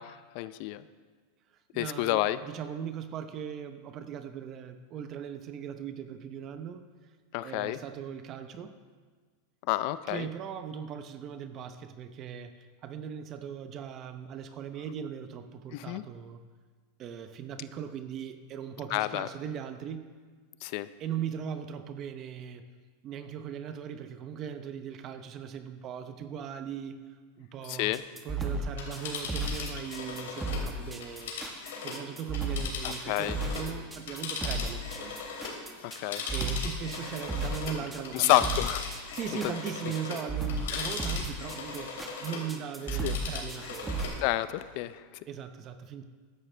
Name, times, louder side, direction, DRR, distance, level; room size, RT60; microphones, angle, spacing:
voice 1, 0.3-0.8 1.8-2.4 7.3-7.8 9.7-10.3 15.7-16.0 18.9-19.3 20.6-20.9 27.7-28.0 32.8-33.4 36.0-36.2 38.1-38.8 40.7-40.9 43.0-43.1 44.2-44.9, left 16 dB, 55° left, 15 dB, 0.5 m, -29 dB
voice 2, 1.7-6.9 7.4-8.7 10.1-16.4 17.0-20.1 21.0-22.6 23.0-27.9 28.2-31.3 31.8-35.1 36.3-38.5 39.1-44.0 45.3-46.0, right 8 dB, 35° right, 9 dB, 0.7 m, -39 dB
sound 1, 27.9-44.0, right 2 dB, 10° right, 1.3 m, -34 dB
Telephone, 28.6-33.7 34.0-42.5 42.8-44.2 44.6-44.7, left 4 dB, 80° left, 3.0 m, -39 dB
15.0 x 11.0 x 3.4 m, 1.5 s
supercardioid pair, 130°, 0 cm